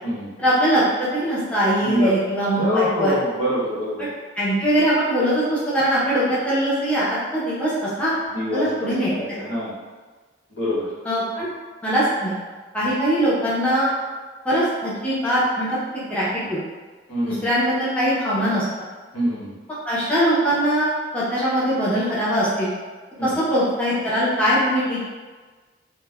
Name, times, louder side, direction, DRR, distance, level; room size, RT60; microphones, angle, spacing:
voice 1, 0.4-3.1 4.0-4.1 4.4-7.7 8.0-8.1 8.5-9.1 11.0-11.5 11.8-12.4 12.7-13.9 14.4-16.6 17.3-18.7 19.9-22.7 23.2-25.0, equal, 5° left, -10 dB, 0.5 m, -21 dB
voice 2, 1.8-2.1 2.5-4.1 8.3-8.7 9.1-9.7 10.5-10.9 12.8-12.9 17.1-17.5 19.1-19.5 23.2-23.3, left 1 dB, 85° left, -9 dB, 1.1 m, -24 dB
3.0 x 2.0 x 2.2 m, 1.4 s
head